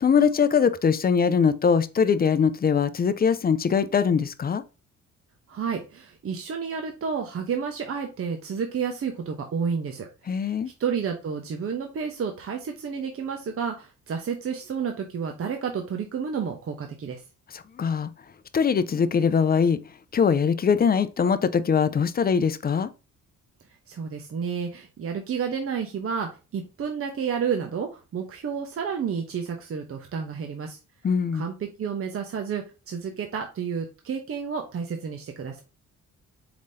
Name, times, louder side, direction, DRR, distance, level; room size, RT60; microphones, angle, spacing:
voice 1, 0.0-4.6 10.3-10.7 17.5-18.1 18.5-19.8 20.1-22.9 31.0-31.5, left 6 dB, 30° left, 0.5 m, -22 dB
voice 2, 5.5-10.1 10.4-10.5 10.8-17.2 23.9-30.8 31.3-35.6, right 6 dB, 50° right, 0.9 m, -30 dB
4.8 x 3.7 x 2.7 m
cardioid pair, 90°, 30 cm